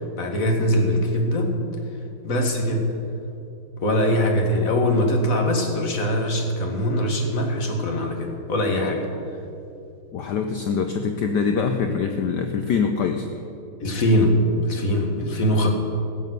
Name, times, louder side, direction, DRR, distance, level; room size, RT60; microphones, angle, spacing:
voice 1, 0.0-1.6 2.2-2.9 3.8-9.1 13.8-15.7, equal, 40° left, 2 dB, 1.9 m, -22 dB
voice 2, 10.1-13.3, left 5 dB, 65° left, 6 dB, 1.1 m, -24 dB
16.0 x 7.2 x 8.0 m, 2.7 s
omnidirectional pair, 2.4 m